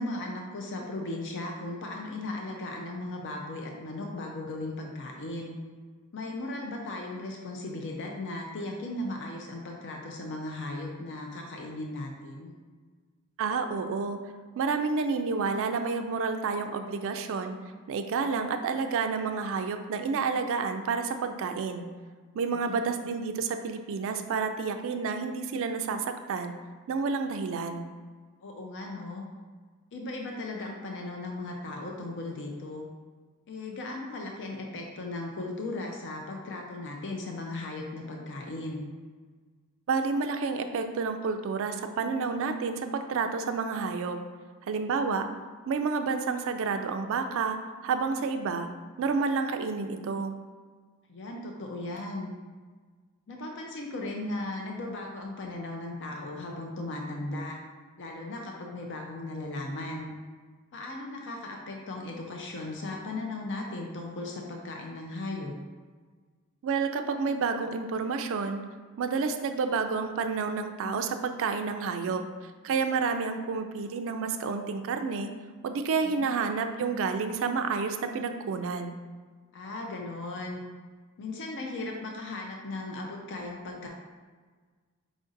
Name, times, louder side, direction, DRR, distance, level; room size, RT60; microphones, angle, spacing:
voice 1, 0.0-5.6 6.1-12.5 22.5-22.8 28.4-29.3 29.9-32.9 33.5-38.9 51.1-52.3 53.3-57.6 58.0-60.1 60.7-65.5 76.0-76.3 79.5-80.6 81.2-83.9, left 2 dB, 55° left, 0 dB, 0.5 m, -37 dB
voice 2, 13.4-14.2 14.6-17.6 17.9-21.8 22.3-26.5 26.9-27.9 39.9-44.2 44.7-45.3 45.7-47.6 47.8-48.7 49.0-50.3 66.6-68.6 69.0-72.2 72.6-75.3 75.6-79.0, right 5 dB, 65° right, 7 dB, 0.4 m, -29 dB
4.9 x 2.5 x 3.9 m, 1.5 s
head